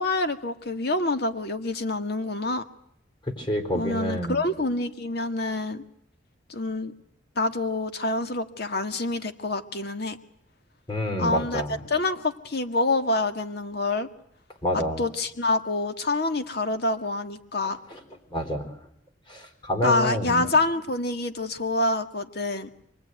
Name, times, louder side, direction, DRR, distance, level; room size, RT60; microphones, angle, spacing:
voice 1, 0.0-2.6 3.7-5.8 6.5-6.9 7.4-10.2 11.2-11.6 11.9-14.1 15.0-17.8 19.8-22.7, left 2 dB, 55° left, 7 dB, 1.9 m, -26 dB
voice 2, 3.3-4.5 10.9-11.8 14.6-15.0 17.9-18.0 18.3-18.7 19.3-20.5, equal, 25° left, 6 dB, 4.1 m, -28 dB
27.5 x 20.0 x 9.3 m, 0.73 s
head